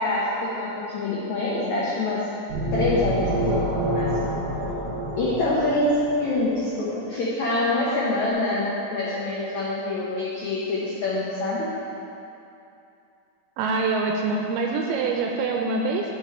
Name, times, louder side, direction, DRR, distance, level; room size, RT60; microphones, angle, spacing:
voice 1, 0.0-2.3 2.7-4.3 5.2-11.7, left 2 dB, 80° left, -7 dB, 1.7 m, -25 dB
sound 1, 2.5-6.2, right 1 dB, 40° right, 2.2 m, -27 dB
voice 2, 13.6-16.2, right 3 dB, 80° right, 1 dB, 2.3 m, -25 dB
11.5 x 5.2 x 4.3 m, 2.7 s
omnidirectional pair, 4.8 m